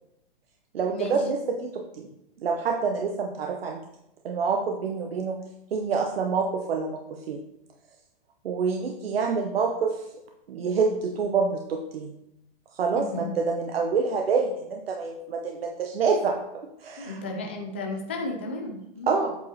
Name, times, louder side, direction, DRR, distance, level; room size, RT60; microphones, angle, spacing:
voice 1, 0.7-2.1 2.4-3.8 4.2-5.4 5.7-7.4 8.4-10.0 10.5-12.1 12.7-16.4 16.8-17.2 19.1-19.4, right 5 dB, 75° right, 3 dB, 0.9 m, -27 dB
voice 2, 12.9-13.3 17.0-19.1, left 2 dB, 15° left, 1 dB, 0.3 m, -34 dB
8.2 x 4.8 x 4.1 m, 0.85 s
hypercardioid pair, 170°, 30 cm